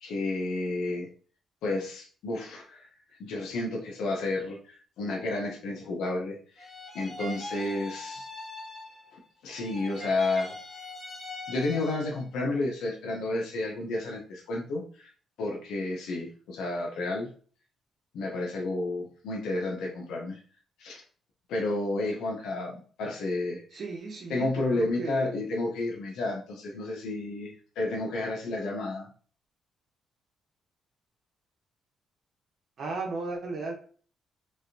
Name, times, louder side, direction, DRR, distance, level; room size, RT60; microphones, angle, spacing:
voice 1, 0.0-1.1 1.6-2.9 3.2-6.7 6.9-8.3 9.1-10.6 11.5-15.1 15.4-17.3 18.1-20.4 20.8-21.0 21.5-23.8 24.3-29.1, left 2 dB, 85° left, 0 dB, 0.9 m, -31 dB
sound 1, 6.6-9.2 9.5-12.2, left 1 dB, ahead, 1.0 m, -41 dB
voice 2, 23.7-25.3 32.8-33.7, right 3 dB, 60° right, 0 dB, 1.0 m, -35 dB
3.5 x 3.3 x 2.8 m, 0.43 s
cardioid pair, 90°, 0 cm